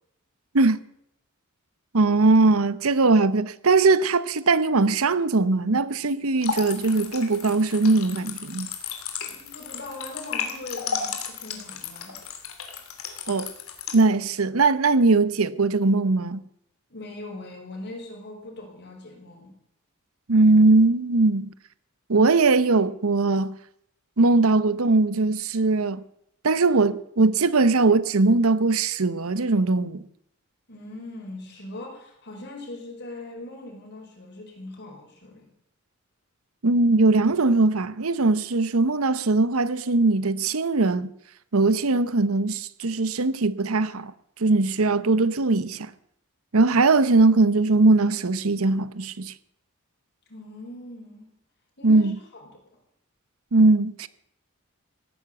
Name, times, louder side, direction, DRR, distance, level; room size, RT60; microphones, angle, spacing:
voice 1, 1.9-8.7 13.3-13.5 13.9-16.4 20.3-21.5 22.1-23.5 24.2-26.0 26.4-30.0 36.6-41.1 41.5-44.1 44.4-45.9 46.5-49.3 51.8-52.2 53.5-54.1, right 3 dB, 90° right, 0.9 m, -20 dB
sound 1, 6.4-14.0, left 6 dB, 85° left, 2.9 m, -34 dB
voice 2, 9.2-12.2 16.9-19.5 30.7-35.5 50.3-51.3 51.8-52.6, left 2 dB, 55° left, 5.5 m, -40 dB
17.0 x 9.9 x 8.2 m
head